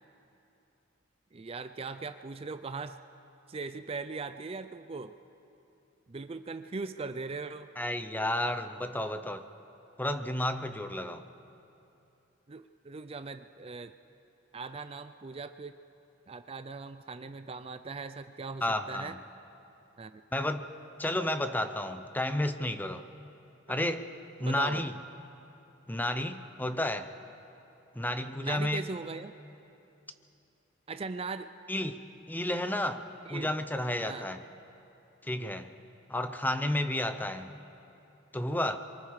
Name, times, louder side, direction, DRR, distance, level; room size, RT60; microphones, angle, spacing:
voice 1, 1.3-3.0 3.5-5.1 6.1-7.7 12.5-13.9 14.5-15.8 16.3-19.2 20.0-20.2 23.7-23.8 24.4-25.0 28.4-29.3 30.9-31.5 33.3-33.5 34.0-34.3, right 4 dB, 30° right, 10 dB, 0.5 m, -39 dB
voice 2, 7.8-9.5 10.0-11.2 18.6-19.2 20.3-20.7 21.0-23.0 23.7-24.0 24.4-24.9 25.9-27.1 27.9-28.9 31.7-32.0 32.3-34.4 35.2-35.7 36.1-37.6 38.3-38.8, left 1 dB, 10° left, 9 dB, 0.7 m, -31 dB
30.0 x 24.0 x 4.9 m, 2.9 s
head